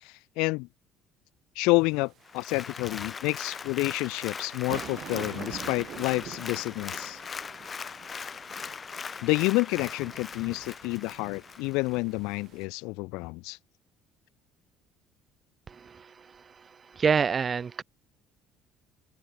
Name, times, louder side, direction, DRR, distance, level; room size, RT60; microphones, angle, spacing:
voice 1, 0.0-0.7 1.6-7.2 9.2-13.6, left 26 dB, 90° left, 0.9 m, -29 dB
sound 1, 1.7-12.6, right 11 dB, 45° right, 1.8 m, -46 dB
Applause, 2.2-12.0 12.5-12.6, left 6 dB, 25° left, 0.5 m, -40 dB
voice 2, 15.7-16.4 16.9-17.8, right 6 dB, 25° right, 1.3 m, -27 dB
open air
cardioid pair, 155°, 0 cm